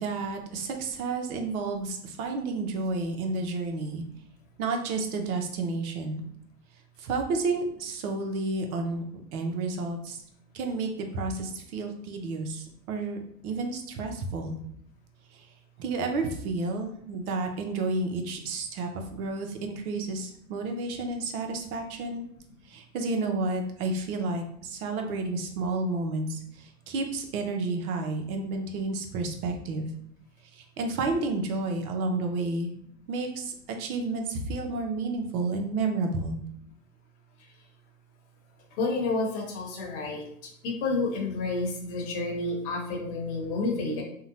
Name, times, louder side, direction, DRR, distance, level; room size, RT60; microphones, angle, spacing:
voice 1, 0.0-4.0 4.6-6.2 7.0-9.0 9.3-10.2 10.5-13.2 13.4-14.6 15.3-15.5 15.8-22.2 22.7-29.9 30.5-32.7 33.1-36.3, right 3 dB, 60° right, 4 dB, 0.7 m, -31 dB
voice 2, 38.8-40.3 40.6-44.0, left 3 dB, 45° left, -1 dB, 0.9 m, -30 dB
2.7 x 2.1 x 2.7 m, 0.69 s
hypercardioid pair, 115°, 48 cm